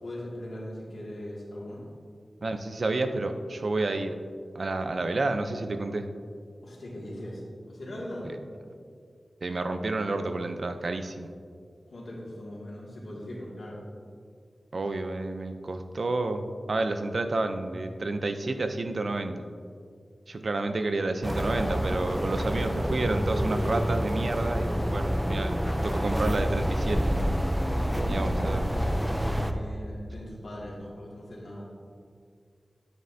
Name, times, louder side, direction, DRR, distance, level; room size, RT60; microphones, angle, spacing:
voice 1, 0.0-1.8 6.6-7.4 7.7-8.4 11.9-13.8 25.6-25.9 27.6-31.7, left 1 dB, 80° left, -5 dB, 2.2 m, -40 dB
voice 2, 2.4-4.1 4.5-6.1 8.2-8.4 9.4-11.3 14.7-16.4 16.7-19.4 20.3-27.0 28.1-28.7, right 2 dB, 65° right, 8 dB, 0.6 m, -30 dB
sound 1, 21.2-29.5, equal, 5° right, 0.6 m, -28 dB
9.6 x 8.9 x 2.8 m, 2.2 s
wide cardioid pair, 80°, 0 cm